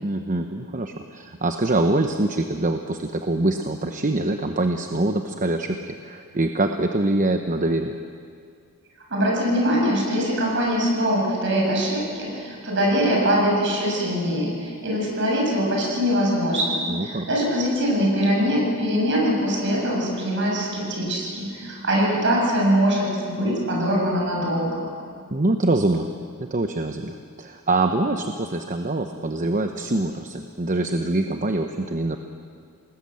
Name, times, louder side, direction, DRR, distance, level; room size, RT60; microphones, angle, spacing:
voice 1, 0.0-7.9 16.9-17.3 25.3-26.1 26.4-32.2, right 2 dB, 35° right, 5 dB, 1.0 m, -24 dB
voice 2, 9.1-24.9, equal, 55° right, -2 dB, 7.2 m, -22 dB
28.5 x 19.5 x 7.8 m, 2.2 s
head